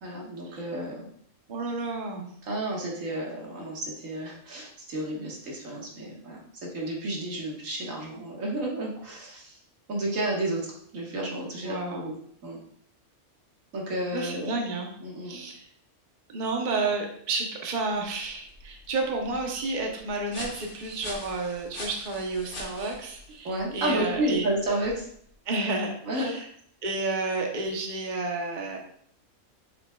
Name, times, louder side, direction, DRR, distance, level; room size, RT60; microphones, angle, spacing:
voice 1, 0.0-1.1 2.4-9.6 9.9-12.1 12.4-12.6 13.7-14.6 15.0-15.5 23.4-25.1 26.1-26.3, right 1 dB, 90° right, -2 dB, 1.9 m, -31 dB
voice 2, 1.5-2.3 11.6-12.1 14.1-14.9 15.2-15.7 16.3-24.5 25.5-26.5 26.8-28.8, right 3 dB, 40° right, 1 dB, 1.0 m, -31 dB
sound 1, 18.0-25.3, left 1 dB, 45° left, 1.3 m, -44 dB
8.1 x 5.1 x 2.3 m, 0.65 s
omnidirectional pair, 1.3 m